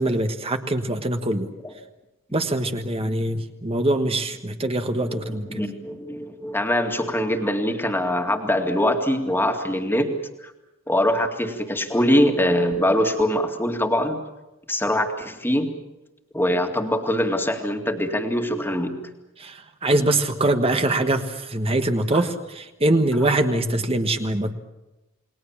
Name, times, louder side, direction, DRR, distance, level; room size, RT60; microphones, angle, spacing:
voice 1, 0.0-1.5 2.3-5.6 19.4-24.6, right 1 dB, 30° right, 7 dB, 1.4 m, -23 dB
voice 2, 4.9-10.1 10.4-10.5 10.9-14.2 14.7-15.7 16.3-18.9 22.1-22.2, left 1 dB, 10° left, 4 dB, 2.2 m, -23 dB
29.5 x 20.0 x 7.3 m, 0.98 s
head